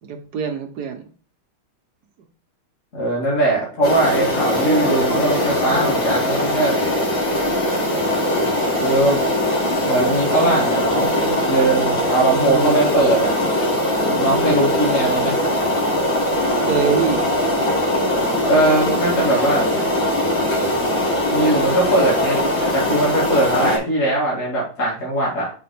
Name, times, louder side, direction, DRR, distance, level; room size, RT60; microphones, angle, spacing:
voice 1, 0.0-1.0 12.3-12.8 16.7-17.3, right 6 dB, 60° right, 5 dB, 1.2 m, -24 dB
voice 2, 2.9-6.8 8.8-9.2 9.6-13.4 14.0-15.4 18.4-19.8 21.3-25.5, right 2 dB, 35° left, -6 dB, 2.6 m, -20 dB
sound 1, 3.8-23.8, left 1 dB, 60° left, 3.3 m, -20 dB
6.1 x 4.2 x 5.8 m, 0.40 s
omnidirectional pair, 2.3 m